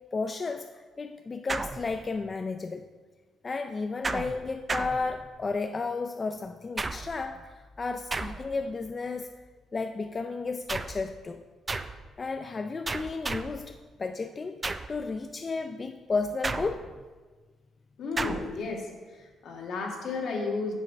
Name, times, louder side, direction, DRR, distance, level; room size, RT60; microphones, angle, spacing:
voice 1, 0.1-2.9 3.4-9.3 9.7-11.4 12.2-14.6 14.9-16.9, left 4 dB, 35° left, 6 dB, 0.4 m, -33 dB
sound 1, 1.5-2.3 4.0-5.6 6.8-7.3 8.1-8.7 10.7-11.1 11.7-12.1 12.9-13.7 14.6-15.0 16.4-17.1 18.2-18.6, right 3 dB, 25° right, 0.4 m, -34 dB
voice 2, 18.0-20.8, left 4 dB, 70° left, 1 dB, 1.7 m, -33 dB
7.5 x 6.3 x 5.3 m, 1.4 s
cardioid pair, 90°, 0 cm